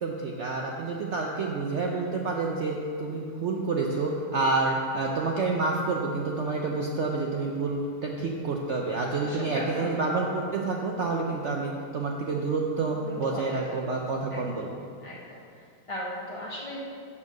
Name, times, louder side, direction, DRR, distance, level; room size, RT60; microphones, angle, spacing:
voice 1, 0.0-14.7, right 3 dB, 70° right, 0 dB, 0.6 m, -28 dB
voice 2, 9.2-9.9 13.0-13.9 14.3-14.7 15.0-16.8, left 1 dB, 35° left, -5 dB, 0.5 m, -38 dB
6.8 x 5.7 x 6.5 m, 2.4 s
omnidirectional pair, 2.0 m